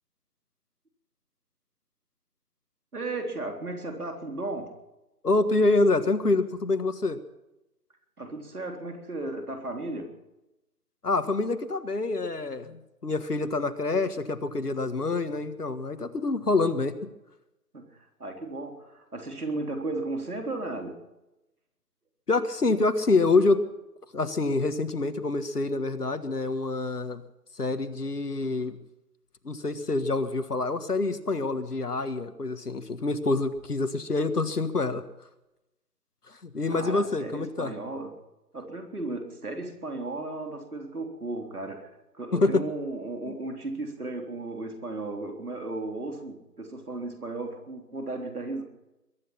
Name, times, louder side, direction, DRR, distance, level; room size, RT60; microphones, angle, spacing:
voice 1, 2.9-4.7 8.2-10.2 17.7-21.0 36.7-38.1 38.5-41.9 42.1-48.6, right 2 dB, 60° right, 4 dB, 3.8 m, -35 dB
voice 2, 5.2-7.2 11.0-17.0 22.3-23.6 24.1-27.2 27.5-28.8 29.4-35.0 36.4-37.7 42.4-42.6 43.2-43.3, left 3 dB, 65° left, 10 dB, 1.7 m, -26 dB
22.5 x 11.0 x 5.8 m, 0.94 s
figure-of-eight pair, 175°, 49 cm